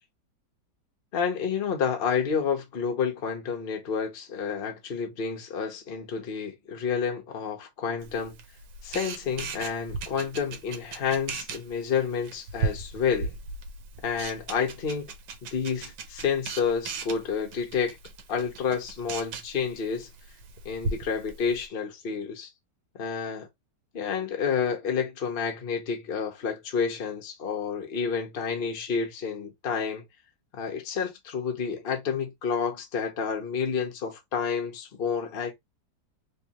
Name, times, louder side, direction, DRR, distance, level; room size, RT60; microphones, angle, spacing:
voice 1, 1.1-8.4 8.8-13.3 14.0-15.1 15.4-18.0 18.3-20.1 20.6-22.5 22.9-23.5 23.9-30.0 30.5-35.5, left 6 dB, 40° left, 1.0 m, -29 dB
Camera, 8.0-21.7, right 4 dB, 75° right, 1.4 m, -38 dB
3.3 x 3.2 x 2.9 m
omnidirectional pair, 2.0 m